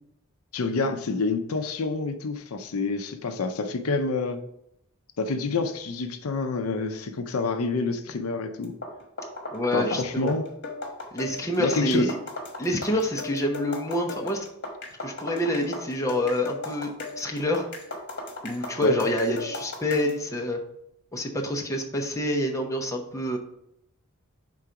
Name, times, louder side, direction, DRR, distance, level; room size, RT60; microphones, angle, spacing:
voice 1, 0.5-4.4 5.2-8.7 9.7-10.4 11.6-12.1 18.8-19.0, left 3 dB, 70° left, 8 dB, 0.5 m, -27 dB
sound 1, 8.6-20.2, left 2 dB, 50° left, 1.3 m, -37 dB
voice 2, 9.5-10.4 11.1-12.2 12.6-14.5 15.0-16.9 17.2-17.7 18.4-20.6 21.1-23.4, left 1 dB, 15° left, 1 dB, 0.8 m, -27 dB
4.8 x 3.8 x 5.7 m, 0.77 s
head